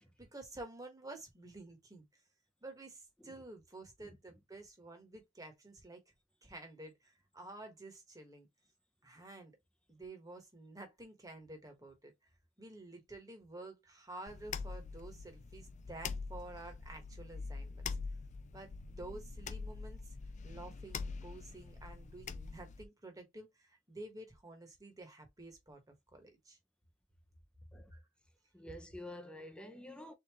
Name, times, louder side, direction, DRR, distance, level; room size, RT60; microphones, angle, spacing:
voice 1, 0.0-2.0 2.6-6.0 6.4-8.5 9.0-9.5 9.9-12.1 12.6-17.9 18.5-20.1 20.4-26.6 27.9-28.0, right 2 dB, 15° right, 1.4 m, -51 dB
sound 1, 14.3-22.8, left 4 dB, 35° left, 0.4 m, -44 dB
voice 2, 28.5-30.1, left 1 dB, 5° left, 0.8 m, -49 dB
4.1 x 3.7 x 3.0 m
head